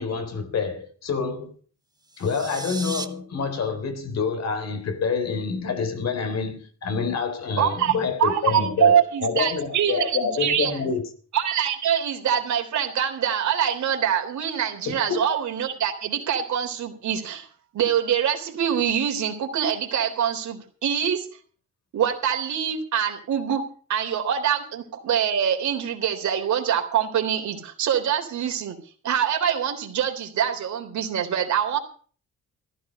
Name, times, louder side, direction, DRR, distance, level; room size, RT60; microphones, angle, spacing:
voice 1, 0.0-1.5 2.2-11.1 14.9-15.2, left 5 dB, 60° left, 3.8 m, -27 dB
sound 1, 2.0-3.1, right 3 dB, 15° right, 1.6 m, -35 dB
voice 2, 7.6-10.7 11.3-17.5 17.7-21.3 21.9-23.6 23.9-28.8 29.0-31.8, right 9 dB, 70° right, 3.6 m, -24 dB
15.0 x 12.5 x 5.4 m
cardioid pair, 90°, 30 cm